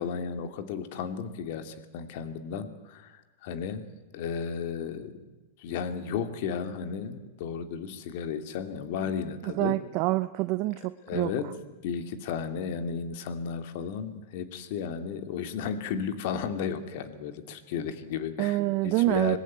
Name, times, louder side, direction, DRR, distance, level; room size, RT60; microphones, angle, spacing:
voice 1, 0.0-3.9 4.1-5.3 5.6-9.8 11.1-11.4 11.8-18.6 18.8-19.4, left 7 dB, 60° left, 9 dB, 2.6 m, -34 dB
voice 2, 9.4-11.3 18.4-19.4, right 18 dB, 50° right, 11 dB, 0.9 m, -26 dB
26.0 x 20.5 x 9.4 m, 1.1 s
hypercardioid pair, 125°, 0 cm